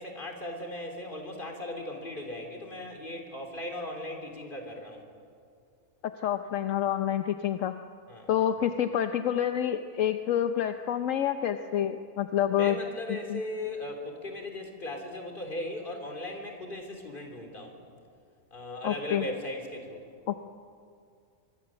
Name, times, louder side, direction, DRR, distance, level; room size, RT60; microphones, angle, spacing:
voice 1, 0.0-5.1 8.1-8.3 12.5-17.8 18.5-20.0, left 1 dB, 40° left, 3 dB, 3.8 m, -38 dB
voice 2, 6.0-7.8 8.3-12.8 13.1-13.4 18.8-19.3 20.3-20.5, left 10 dB, 75° left, 8 dB, 1.2 m, -28 dB
25.0 x 23.0 x 7.8 m, 2.3 s
omnidirectional pair, 1.4 m